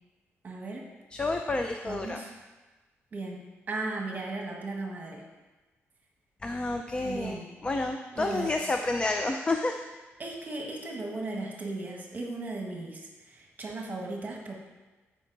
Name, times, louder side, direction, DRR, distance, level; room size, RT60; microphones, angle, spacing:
voice 1, 0.4-0.9 1.8-2.3 3.1-5.2 7.0-7.5 8.1-8.5 10.2-14.5, right 2 dB, 35° right, 0 dB, 1.5 m, -36 dB
voice 2, 1.1-2.2 6.4-9.8, left 2 dB, 20° left, 5 dB, 0.5 m, -30 dB
13.5 x 5.4 x 4.0 m, 1.2 s
cardioid pair, 120°, 5 cm